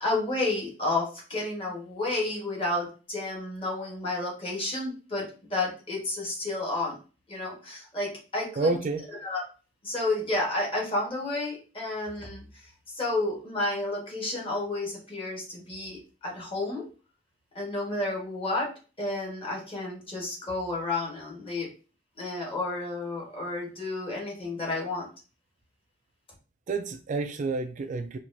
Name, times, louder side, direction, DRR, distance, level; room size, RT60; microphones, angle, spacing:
voice 1, 0.0-7.0 7.3-8.7 9.2-9.4 9.8-16.8 17.5-21.7 22.2-25.1, left 2 dB, 30° left, -2 dB, 1.4 m, -31 dB
voice 2, 8.6-9.1 26.7-28.2, right 3 dB, 40° right, 7 dB, 0.3 m, -29 dB
4.5 x 2.5 x 2.6 m, 0.35 s
head